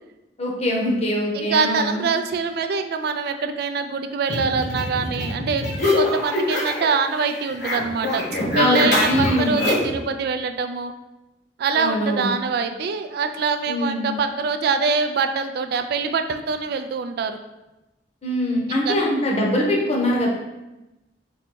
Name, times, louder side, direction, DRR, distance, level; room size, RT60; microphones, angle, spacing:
voice 1, 0.4-2.0 8.6-9.6 11.7-12.3 13.7-14.1 18.2-20.3, left 1 dB, 35° left, -2 dB, 0.8 m, -23 dB
voice 2, 1.3-5.7 6.0-8.2 8.5-10.9 11.6-17.4 18.7-19.0, right 5 dB, 60° right, 8 dB, 0.3 m, -24 dB
sound 1, 4.3-6.9 7.2-10.0, left 1 dB, 65° left, 1.0 m, -24 dB
3.9 x 2.2 x 4.5 m, 1.0 s
head